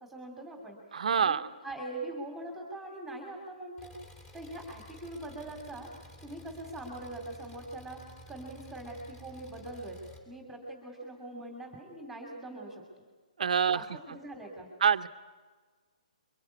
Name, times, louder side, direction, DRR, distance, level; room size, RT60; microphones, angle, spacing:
voice 1, 0.0-0.8 1.1-1.4 1.6-3.9 4.3-5.9 6.2-8.0 8.3-10.0 10.3-12.8 13.7-14.7, right 1 dB, 5° right, 1 dB, 2.7 m, -42 dB
voice 2, 0.9-1.5 13.4-13.9 14.8-15.1, right 7 dB, 65° right, 11 dB, 0.9 m, -26 dB
Engine, 3.8-10.2, equal, 15° left, 3.5 m, -52 dB
23.5 x 22.5 x 8.4 m, 1.4 s
hypercardioid pair, 155°, 4 cm